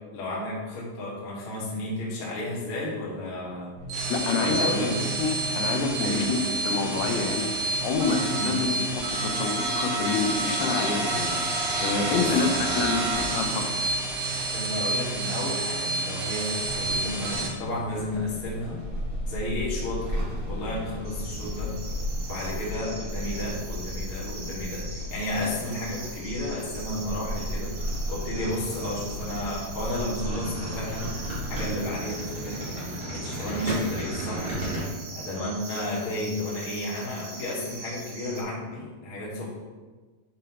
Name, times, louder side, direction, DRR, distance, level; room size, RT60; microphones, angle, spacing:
voice 1, 0.1-3.7 4.4-4.9 6.0-6.3 8.3-8.5 12.2-12.3 14.5-18.8 19.3-21.7 22.2-31.1 31.5-34.6 35.1-39.5, left 1 dB, 50° left, -6 dB, 1.7 m, -32 dB
sound 1, 3.8-17.5, right 2 dB, 90° right, 1.4 m, -28 dB
voice 2, 4.1-6.4 6.7-7.5 7.8-11.4 11.8-12.5 12.7-13.7, left 4 dB, 90° left, 3 dB, 2.7 m, -27 dB
sound 2, 16.6-34.8, equal, 50° right, 0.6 m, -34 dB
sound 3, 21.0-38.4, right 3 dB, 70° right, 1.8 m, -42 dB
7.3 x 4.9 x 2.9 m, 1.3 s
omnidirectional pair, 4.4 m